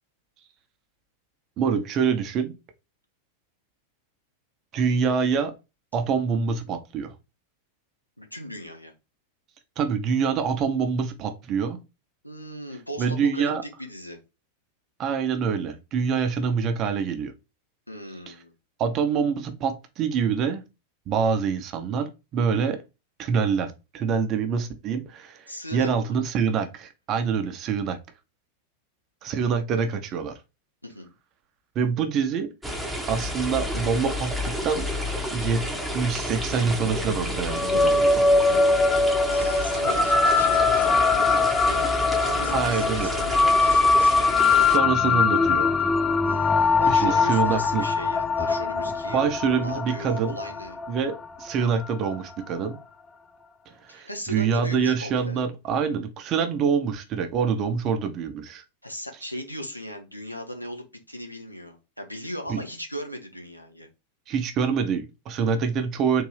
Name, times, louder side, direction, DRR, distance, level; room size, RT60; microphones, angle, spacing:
voice 1, 1.6-2.5 4.7-5.5 5.9-7.1 9.8-11.8 13.0-13.6 15.0-17.3 18.3-18.4 18.8-20.6 21.1-22.8 23.2-28.0 29.2-30.4 31.8-32.5 33.1-35.0 35.3-35.6 35.9-38.3 42.5-43.1 44.7-45.7 46.9-47.9 49.1-50.4 50.9-52.8 53.7-58.6 62.5-62.6 64.3-66.2, right 6 dB, 35° right, 0.7 m, -25 dB
voice 2, 8.2-8.9 12.2-13.1 13.3-13.5 13.8-14.2 17.9-18.5 25.5-26.1 30.8-31.1 39.3-44.8 46.2-49.3 49.6-50.8 53.9-55.4 58.8-63.9, equal, 90° left, 0.7 m, -37 dB
sound 1, 32.6-44.8, equal, ahead, 0.8 m, -30 dB
sound 2, 37.5-52.2, left 4 dB, 15° left, 0.3 m, -22 dB
3.8 x 2.6 x 3.2 m
figure-of-eight pair, 90°, 0 cm